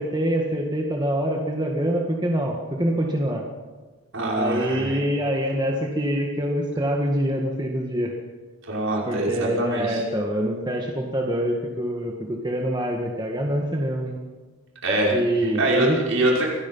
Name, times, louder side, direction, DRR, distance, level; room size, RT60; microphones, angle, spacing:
voice 1, 0.0-3.4 4.4-8.1 9.1-14.2 15.1-16.0, right 1 dB, 20° right, 0 dB, 1.8 m, -25 dB
voice 2, 4.1-5.0 8.7-10.0 14.8-15.2 15.5-16.5, right 1 dB, 65° right, -2 dB, 5.8 m, -23 dB
25.0 x 18.5 x 5.7 m, 1.3 s
head